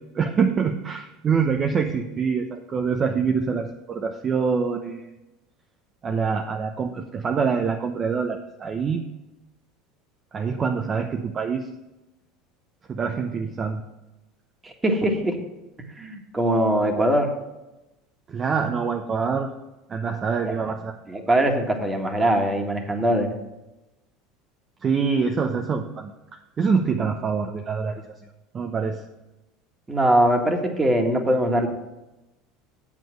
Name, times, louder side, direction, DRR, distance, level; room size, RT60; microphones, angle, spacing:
voice 1, 0.1-5.1 6.0-9.0 10.3-11.7 12.9-13.8 18.3-19.5 19.9-20.9 24.8-26.1 26.6-28.0 28.5-29.0, right 5 dB, 35° right, 5 dB, 0.8 m, -25 dB
voice 2, 14.6-15.3 16.0-17.3 20.4-20.6 21.1-23.4 29.9-31.7, right 1 dB, 15° right, 4 dB, 1.8 m, -22 dB
7.6 x 7.3 x 6.4 m, 0.98 s
hypercardioid pair, 90°, 0 cm